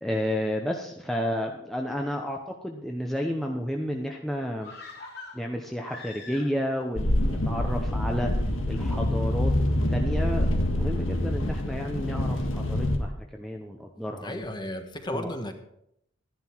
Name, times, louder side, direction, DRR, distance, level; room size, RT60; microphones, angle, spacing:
voice 1, 0.0-4.7 5.3-8.3 8.7-9.5 9.9-14.4 15.1-15.3, equal, ahead, 1 dB, 0.8 m, -31 dB
sound 1, 4.6-6.8 7.1-7.2, left 3 dB, 55° left, 3.3 m, -44 dB
sound 2, 7.0-13.0, left 1 dB, 85° left, 1.8 m, -26 dB
voice 2, 14.2-15.5, left 1 dB, 20° left, 6 dB, 1.2 m, -34 dB
12.5 x 11.0 x 4.6 m, 0.76 s
head